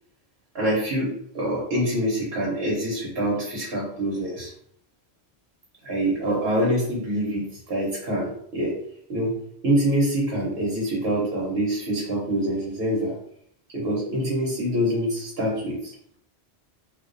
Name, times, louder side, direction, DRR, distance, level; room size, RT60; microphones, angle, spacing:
voice 1, 0.5-4.5 5.8-8.7 9.1-9.4 9.6-13.1 13.7-15.9, right 1 dB, 70° right, -5 dB, 1.0 m, -25 dB
2.3 x 2.2 x 2.4 m, 0.67 s
omnidirectional pair, 1.1 m